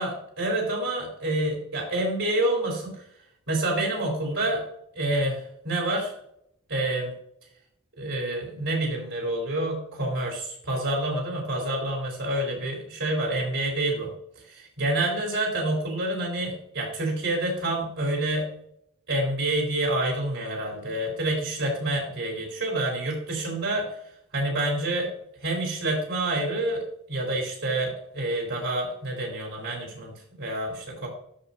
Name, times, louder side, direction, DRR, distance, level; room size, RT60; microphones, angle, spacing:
voice 1, 0.0-2.9 3.5-4.6 4.9-6.1 6.7-7.1 8.0-14.1 14.4-18.5 19.1-23.9 24.3-25.1 25.4-26.8 27.1-30.1 30.4-31.1, right 1 dB, 60° right, -1 dB, 3.4 m, -28 dB
13.0 x 5.3 x 2.7 m, 0.70 s
head